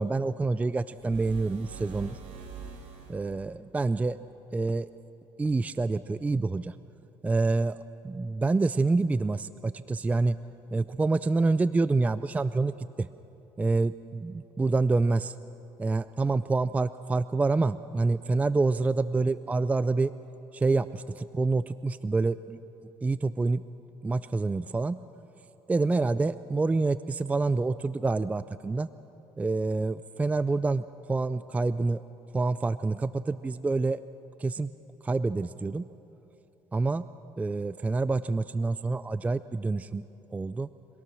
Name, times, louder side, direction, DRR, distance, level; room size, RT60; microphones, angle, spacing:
voice 1, 0.0-2.2 3.1-4.2 4.5-4.9 5.4-6.7 7.2-7.8 8.0-10.4 10.7-13.1 13.6-15.4 15.8-20.1 20.5-22.6 23.0-23.6 24.0-25.0 25.7-28.9 29.4-32.0 32.3-34.0 34.4-34.7 35.0-35.9 36.7-37.0 37.4-40.0 40.3-40.7, right 3 dB, 15° right, 15 dB, 0.4 m, -27 dB
sound 1, 1.0-3.4, right 5 dB, 80° right, 3.7 m, -44 dB
25.0 x 18.0 x 6.2 m, 2.9 s
cardioid pair, 110°, 10 cm